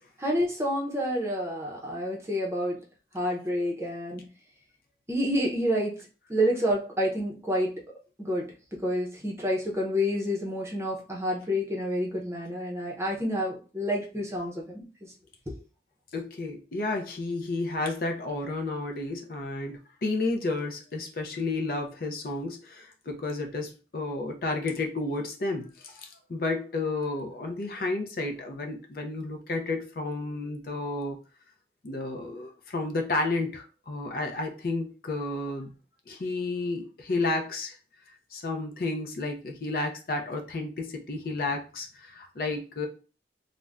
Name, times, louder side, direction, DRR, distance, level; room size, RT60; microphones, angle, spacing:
voice 1, 0.2-2.8 3.1-4.2 5.1-6.0 6.3-7.8 8.2-8.4 8.8-14.9, equal, 15° right, -2 dB, 0.6 m, -28 dB
voice 2, 16.1-31.2 31.8-35.7 36.1-37.8 38.3-42.9, left 2 dB, 55° left, 3 dB, 0.5 m, -31 dB
2.5 x 2.1 x 3.3 m, 0.35 s
head